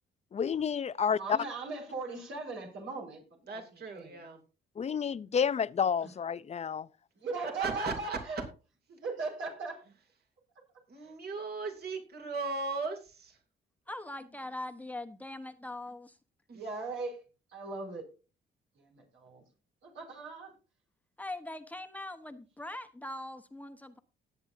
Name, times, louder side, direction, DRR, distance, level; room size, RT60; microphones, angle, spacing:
voice 1, 0.3-1.4 4.8-6.9, left 7 dB, 35° left, 0.5 m, -30 dB
voice 2, 1.1-3.6 3.9-4.2 6.0-6.1 7.1-8.4 8.9-9.8 11.0-11.1 16.5-17.2 17.5-18.1 18.7-19.4 19.8-20.5, right 3 dB, 75° right, 5.0 m, -39 dB
voice 3, 3.5-4.4 7.6-8.4 10.9-13.4 16.5-16.6, right 4 dB, 55° right, 2.9 m, -37 dB
voice 4, 13.9-16.2 21.2-24.0, left 1 dB, 10° left, 1.1 m, -41 dB
19.0 x 7.9 x 2.7 m
cardioid pair, 90°, 20 cm